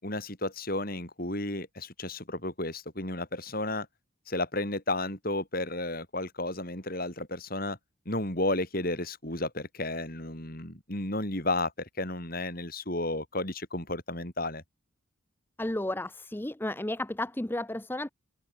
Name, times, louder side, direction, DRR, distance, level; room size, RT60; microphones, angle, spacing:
voice 1, 0.0-3.9 4.3-7.8 8.0-14.6, left 2 dB, 45° left, 6.3 m, -32 dB
voice 2, 15.6-18.1, left 1 dB, 10° left, 0.6 m, -33 dB
open air
head